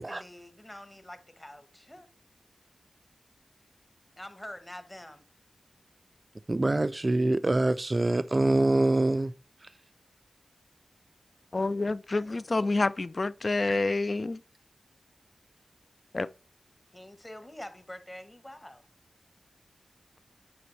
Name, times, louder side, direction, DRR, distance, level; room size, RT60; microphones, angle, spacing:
voice 1, 0.0-2.1 4.2-5.2 12.1-12.9 16.9-18.9, left 1 dB, 20° left, 1.1 m, -46 dB
voice 2, 6.5-9.3, right 2 dB, 35° right, 0.3 m, -25 dB
voice 3, 11.5-14.4 16.1-16.3, left 3 dB, 45° left, 0.3 m, -28 dB
9.3 x 5.3 x 3.2 m
cardioid pair, 55°, 0 cm